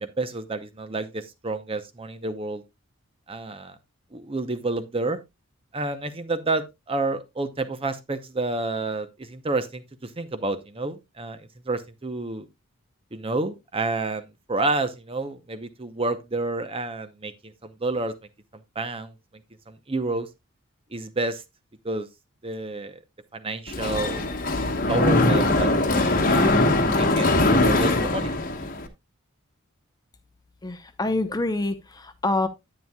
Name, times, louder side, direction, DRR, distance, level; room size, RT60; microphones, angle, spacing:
voice 1, 0.0-2.6 3.3-3.8 4.1-5.2 5.7-12.5 13.1-18.1 18.8-19.1 19.7-20.3 20.9-21.4 21.8-22.1 22.4-23.0 23.3-24.3 24.9-26.5 27.0-28.3, right 2 dB, 25° right, 0.7 m, -29 dB
Mechanisms, 23.7-28.9, left 2 dB, 40° left, 1.1 m, -21 dB
voice 2, 30.6-32.5, left 2 dB, 20° left, 0.7 m, -26 dB
10.0 x 9.4 x 2.3 m
head